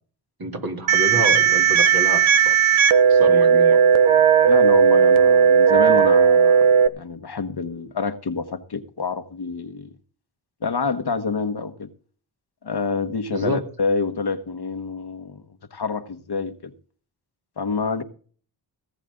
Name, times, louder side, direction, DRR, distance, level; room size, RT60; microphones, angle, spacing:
voice 1, 0.4-2.5 3.1-3.8 13.3-13.6, right 1 dB, 50° right, 3.2 m, -28 dB
sound 1, 0.9-6.9, right 7 dB, 85° right, 0.9 m, -15 dB
voice 2, 4.5-6.7 6.9-9.9 10.6-11.9 12.6-15.4 15.7-16.7 17.6-18.0, left 4 dB, 55° left, 1.2 m, -27 dB
18.0 x 8.3 x 3.9 m
cardioid pair, 50°, 47 cm